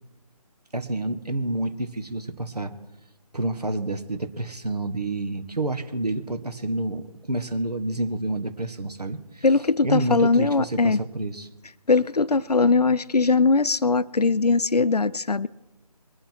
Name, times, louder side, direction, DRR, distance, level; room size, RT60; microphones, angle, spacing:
voice 1, 0.7-2.7 3.3-9.5 9.8-11.5, right 2 dB, 80° right, 1.7 m, -29 dB
voice 2, 9.4-11.0 11.9-15.5, left 4 dB, 80° left, 0.6 m, -20 dB
23.0 x 9.1 x 4.6 m
figure-of-eight pair, 155°, 20 cm